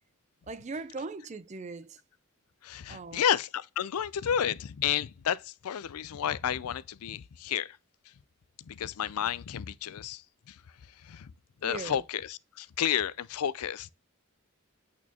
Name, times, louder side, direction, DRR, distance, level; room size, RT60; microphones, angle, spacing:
voice 1, 0.5-2.0 2.9-3.2 11.6-12.0, right 3 dB, 30° right, 0.4 m, -39 dB
voice 2, 2.6-7.8 8.6-10.6 11.0-11.3 11.6-13.9, left 9 dB, 85° left, 0.4 m, -31 dB
8.4 x 4.4 x 2.8 m
head